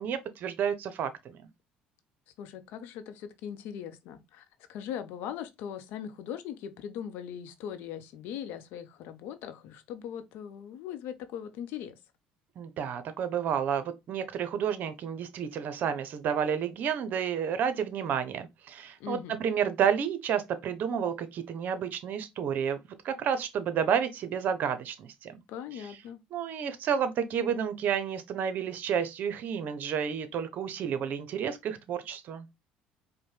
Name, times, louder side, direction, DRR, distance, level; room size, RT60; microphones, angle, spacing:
voice 1, 0.0-1.4 12.6-22.8 23.0-25.4 26.3-32.5, right 8 dB, 55° right, 0.7 m, -30 dB
voice 2, 2.4-12.0 19.0-19.4 25.5-26.2, left 9 dB, 70° left, 0.7 m, -40 dB
5.0 x 2.2 x 3.2 m
hypercardioid pair, 75°, 4 cm